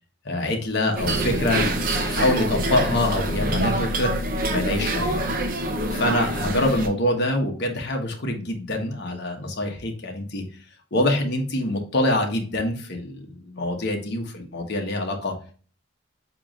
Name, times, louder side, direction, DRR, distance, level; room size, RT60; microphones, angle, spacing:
voice 1, 0.2-4.1 4.5-5.2 5.9-10.4 10.9-15.3, left 1 dB, 55° left, 3 dB, 1.1 m, -25 dB
sound 1, 1.0-6.9, right 1 dB, 45° right, 0.7 m, -25 dB
6.7 x 3.0 x 2.4 m, 0.40 s
head